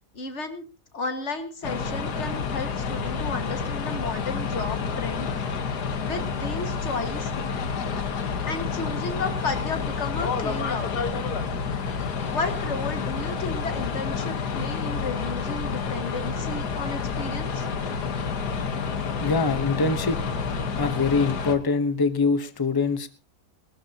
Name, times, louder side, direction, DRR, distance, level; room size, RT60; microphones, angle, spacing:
voice 1, 0.1-0.6 0.9-5.5 6.0-7.3 8.4-10.9 12.3-17.7, left 3 dB, 45° left, 6 dB, 2.0 m, -33 dB
sound 1, 1.6-21.5, left 5 dB, 90° left, 1.8 m, -29 dB
voice 2, 19.2-20.2 20.8-23.1, left 4 dB, 20° left, 11 dB, 0.8 m, -24 dB
22.0 x 13.0 x 2.9 m, 0.32 s
omnidirectional pair, 1.7 m